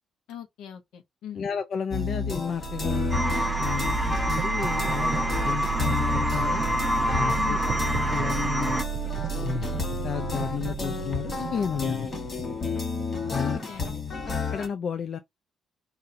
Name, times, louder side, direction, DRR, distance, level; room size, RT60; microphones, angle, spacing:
voice 1, 0.3-1.5 7.3-7.6 13.3-14.0, left 9 dB, 90° left, 1.1 m, -41 dB
voice 2, 1.3-3.1 3.6-6.6 7.1-7.6 7.9-8.8 9.3-9.7 10.0-12.1 13.3-13.6 14.5-15.2, left 7 dB, 60° left, 0.5 m, -32 dB
sound 1, 1.9-14.7, left 4 dB, 40° left, 1.4 m, -32 dB
sound 2, 2.5-14.4, right 10 dB, 60° right, 0.5 m, -33 dB
sound 3, 3.1-8.8, equal, 10° right, 0.6 m, -27 dB
4.2 x 2.7 x 3.7 m
cardioid pair, 90°, 0 cm